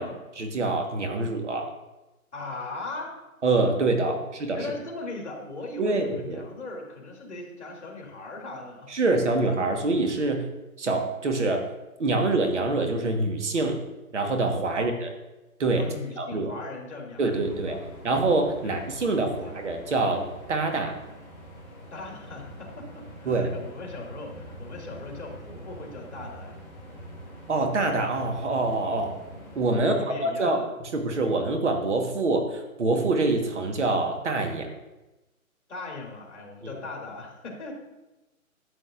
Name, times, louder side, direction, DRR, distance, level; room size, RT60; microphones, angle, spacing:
voice 1, 0.4-1.7 3.4-4.2 4.4-4.7 5.8-6.4 8.9-10.5 10.8-11.7 12.0-13.8 14.1-15.1 15.6-15.9 16.2-16.5 17.2-17.8 18.0-21.0 23.2-23.5 27.5-29.2 29.5-34.7 36.6-36.7, right 2 dB, 55° right, 4 dB, 1.4 m, -25 dB
voice 2, 2.3-3.2 4.0-4.2 4.5-8.9 14.7-14.9 15.8-17.9 18.6-19.6 21.9-26.6 29.7-30.7 35.7-37.7, left 3 dB, 55° left, 0 dB, 2.4 m, -39 dB
sound 1, 17.3-29.7, equal, 5° left, 2.7 m, -44 dB
12.5 x 7.7 x 2.5 m, 1.0 s
hypercardioid pair, 165°, 43 cm